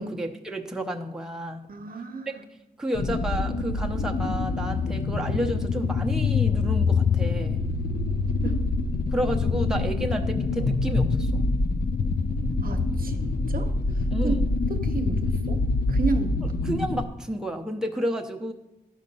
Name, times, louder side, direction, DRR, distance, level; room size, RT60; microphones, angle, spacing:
voice 1, 0.0-1.7 2.8-7.6 9.1-11.4 14.1-14.5 16.7-18.5, right 1 dB, 5° right, 1 dB, 0.7 m, -31 dB
voice 2, 1.7-2.4 8.4-8.6 12.6-14.4 14.7-16.5, right 4 dB, 65° right, 6 dB, 0.8 m, -33 dB
sound 1, 2.9-17.0, left 3 dB, 65° left, 0.6 m, -25 dB
11.5 x 5.1 x 5.4 m, 0.92 s
wide cardioid pair, 95°, 16 cm